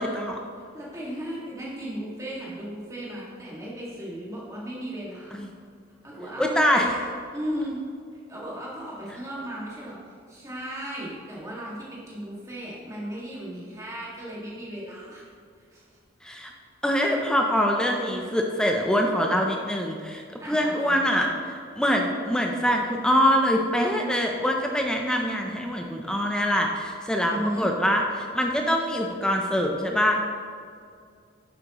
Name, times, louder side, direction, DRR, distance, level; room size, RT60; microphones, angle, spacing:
voice 1, 0.0-0.4 5.4-5.5 6.4-6.9 16.2-16.5 16.8-30.2, equal, 5° left, 1 dB, 0.5 m, -24 dB
voice 2, 0.6-5.4 6.0-6.9 7.3-7.8 8.3-10.0 10.3-15.2 15.7-15.8 20.4-21.0 27.2-27.7, equal, 15° right, -6 dB, 1.9 m, -35 dB
9.9 x 7.7 x 3.0 m, 2.2 s
head